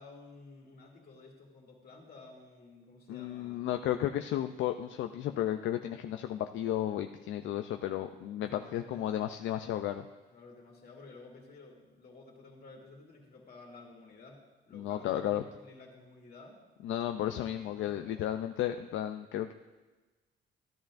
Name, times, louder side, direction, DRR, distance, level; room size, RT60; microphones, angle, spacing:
voice 1, 0.0-3.7 8.4-9.1 10.3-16.6 17.2-18.5, left 3 dB, 50° left, -1 dB, 2.2 m, -53 dB
voice 2, 3.1-10.1 14.7-15.4 16.8-19.5, left 12 dB, 75° left, 7 dB, 0.4 m, -33 dB
13.5 x 10.5 x 2.5 m, 1.2 s
cardioid pair, 90°, 20 cm